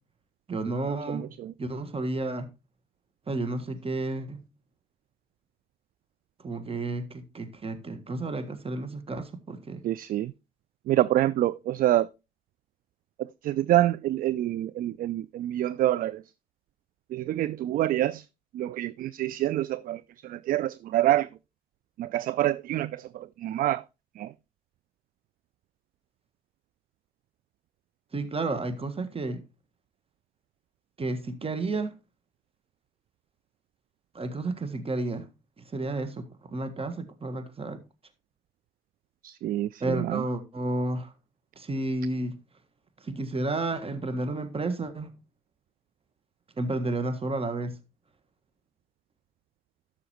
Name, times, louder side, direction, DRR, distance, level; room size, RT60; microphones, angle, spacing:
voice 1, 0.5-1.3 1.6-2.5 3.3-4.4 6.4-9.8 28.1-29.4 31.0-31.9 34.1-35.2 35.7-37.8 39.8-41.1 41.6-42.3 43.1-45.1 46.6-47.7, right 2 dB, 30° right, 1.5 m, -31 dB
voice 2, 1.1-1.5 9.8-10.3 10.9-12.1 13.2-16.2 17.1-18.2 18.5-21.3 22.0-23.8 24.2-24.3 39.2-40.2, right 14 dB, 50° right, 0.4 m, -27 dB
12.5 x 6.1 x 3.0 m
hypercardioid pair, 45°, 19 cm